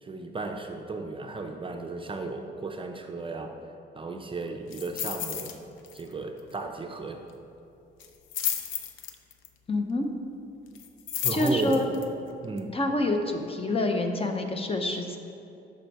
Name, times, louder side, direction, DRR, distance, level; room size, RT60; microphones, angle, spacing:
voice 1, 0.0-3.5 3.9-5.6 5.9-7.2 11.2-11.8 12.4-12.8, right 3 dB, 25° right, 4 dB, 0.5 m, -34 dB
sound 1, 4.7-5.6 5.8-6.1 6.4-6.5 8.0-9.5 10.7-12.0 12.6-12.7, left 9 dB, 80° left, 0.5 m, -32 dB
voice 2, 9.7-10.1 11.3-11.8 12.7-15.2, left 2 dB, 30° left, 4 dB, 0.7 m, -27 dB
6.6 x 5.1 x 4.5 m, 2.7 s
cardioid pair, 90°, 20 cm